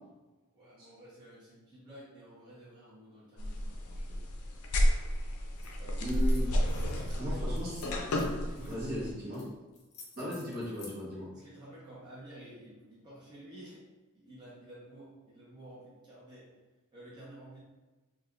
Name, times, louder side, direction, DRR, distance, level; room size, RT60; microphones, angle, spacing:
voice 1, 0.5-4.3 5.6-6.2 6.8-7.6 8.4-8.8 11.3-13.8 14.1-16.5 16.9-17.6, right 1 dB, 20° right, -10 dB, 0.9 m, -51 dB
sound 1, 3.4-9.1, equal, 90° left, 0.5 m, -31 dB
sound 2, 5.5-5.7 6.0-7.2 7.6-8.7 9.3-9.5 9.7-11.0, left 4 dB, 35° left, 0.6 m, -53 dB
voice 2, 6.0-6.4 7.2-7.8 8.7-9.4 10.2-11.3, equal, 45° right, -7 dB, 1.1 m, -36 dB
4.1 x 2.4 x 2.4 m, 1.1 s
head